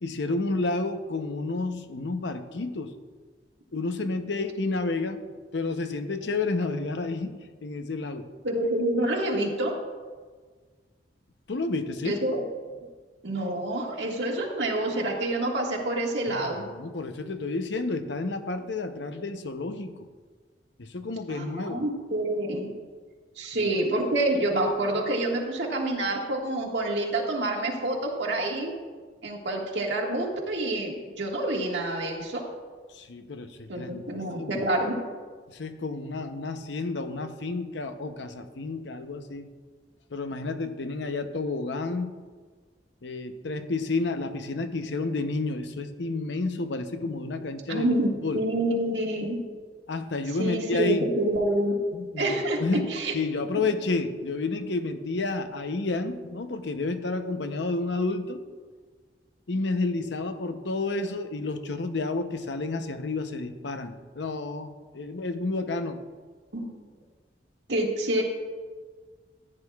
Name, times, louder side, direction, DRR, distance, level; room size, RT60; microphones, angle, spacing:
voice 1, 0.0-2.9 3.7-5.2 5.5-7.4 7.6-8.3 11.5-12.2 16.3-16.4 16.7-20.1 20.8-21.9 23.5-23.7 32.9-34.7 35.5-39.5 40.1-42.1 43.0-47.9 48.2-48.4 49.9-51.1 51.9-58.4 59.5-66.0, left 3 dB, 85° left, 8 dB, 0.7 m, -30 dB
voice 2, 8.4-9.7 12.0-12.4 13.2-16.6 21.3-22.7 23.3-28.7 29.2-32.4 33.7-35.0 47.7-49.4 50.4-51.8 52.2-52.6 52.9-53.1 53.5-53.6 66.5-66.7 67.7-68.2, right 1 dB, 80° right, 0 dB, 1.7 m, -27 dB
14.5 x 9.8 x 2.4 m, 1.5 s
head